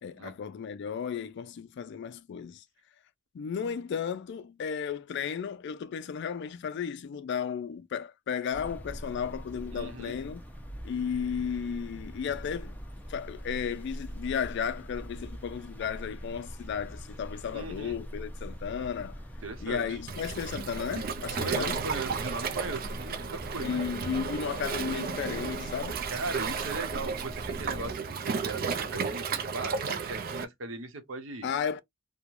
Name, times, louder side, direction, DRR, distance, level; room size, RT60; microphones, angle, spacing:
voice 1, 0.0-2.6 3.3-10.4 10.8-12.8 13.1-19.2 19.6-21.8 23.6-26.0 31.4-31.8, left 7 dB, 60° left, 0.3 m, -34 dB
sound 1, 8.5-27.9, equal, 10° left, 0.5 m, -43 dB
voice 2, 9.7-10.2 17.5-18.0 19.4-20.0 21.4-23.8 26.1-28.0 28.2-31.5, right 2 dB, 75° right, 0.8 m, -38 dB
Waves surf, 20.1-30.4, right 5 dB, 45° right, 0.4 m, -33 dB
3.1 x 2.1 x 2.4 m
head